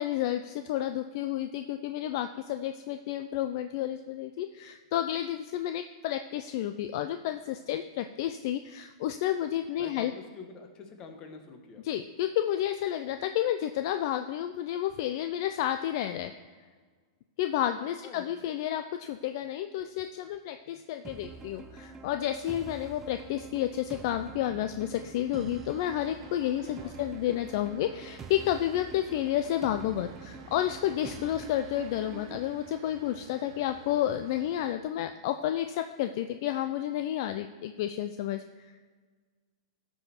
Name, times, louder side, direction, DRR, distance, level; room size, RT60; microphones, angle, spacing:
voice 1, 0.0-10.1 11.8-16.3 17.4-38.4, left 12 dB, 55° left, 8 dB, 0.4 m, -31 dB
voice 2, 9.8-11.9 18.0-18.3 26.6-27.1, left 5 dB, 30° left, 5 dB, 1.3 m, -46 dB
sound 1, 21.0-32.5, right 4 dB, 15° right, 0.6 m, -46 dB
sound 2, 22.0-34.7, right 7 dB, 60° right, 0.9 m, -53 dB
13.0 x 5.4 x 4.4 m, 1.5 s
hypercardioid pair, 140°, 3 cm